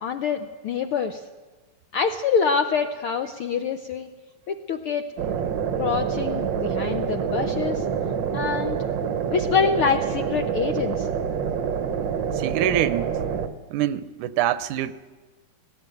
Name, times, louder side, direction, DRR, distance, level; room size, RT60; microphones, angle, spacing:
voice 1, 0.0-1.2 1.9-4.1 4.5-5.1 5.8-7.8 8.3-8.8 9.3-11.1, left 6 dB, 75° left, 6 dB, 1.3 m, -25 dB
sound 1, 5.2-13.5, right 7 dB, 60° right, 1.2 m, -26 dB
voice 2, 12.4-13.2 13.7-14.9, right 12 dB, 85° right, 13 dB, 2.2 m, -25 dB
18.0 x 17.5 x 9.1 m, 1.3 s
omnidirectional pair, 3.4 m